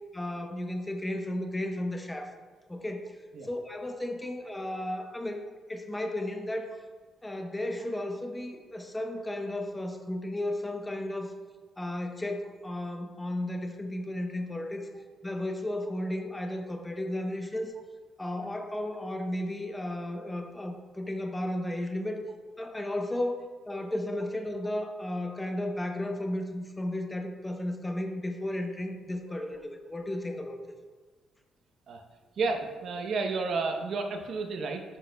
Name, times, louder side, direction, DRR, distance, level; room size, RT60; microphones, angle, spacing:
voice 1, 0.1-2.3 2.7-3.2 3.4-6.7 7.2-11.3 11.8-14.9 15.2-17.8 18.2-22.3 22.6-23.4 23.7-30.6, left 1 dB, 15° left, 5 dB, 0.8 m, -34 dB
voice 2, 32.4-34.8, right 4 dB, 65° right, 4 dB, 0.8 m, -31 dB
9.9 x 6.3 x 2.3 m, 1.4 s
cardioid pair, 90°, 0 cm